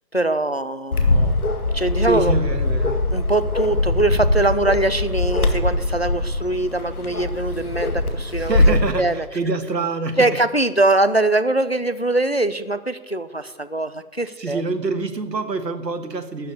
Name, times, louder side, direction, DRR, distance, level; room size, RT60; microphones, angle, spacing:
voice 1, 0.1-1.4 1.7-2.3 3.1-9.3 10.2-14.6, right 2 dB, 40° left, 14 dB, 0.4 m, -22 dB
Bark, 0.9-8.9, left 2 dB, 60° left, 2.0 m, -21 dB
voice 2, 2.0-3.0 8.4-10.4 14.4-16.5, right 3 dB, 85° right, 9 dB, 1.7 m, -26 dB
12.5 x 7.0 x 9.8 m, 1.2 s
figure-of-eight pair, 170°, 49 cm